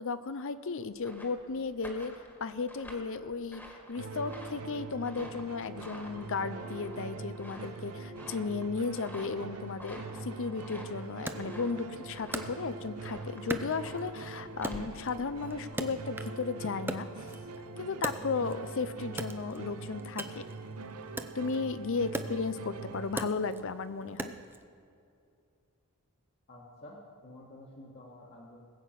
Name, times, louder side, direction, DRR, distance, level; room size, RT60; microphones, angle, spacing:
voice 1, 0.0-2.1 2.4-3.6 3.9-17.1 17.8-20.4 21.3-24.3, left 4 dB, 60° left, 13 dB, 0.6 m, -35 dB
sound 1, 0.8-16.1, equal, 10° left, 1.7 m, -50 dB
sound 2, 4.0-23.1, right 3 dB, 80° right, 0.8 m, -43 dB
Wood, 11.3-13.0 13.5-14.3 14.6-16.5 16.7-18.7 19.1-24.6, right 2 dB, 10° right, 0.5 m, -40 dB
voice 2, 26.5-28.6, left 1 dB, 45° left, -4 dB, 1.7 m, -50 dB
20.0 x 8.2 x 5.9 m, 2.5 s
head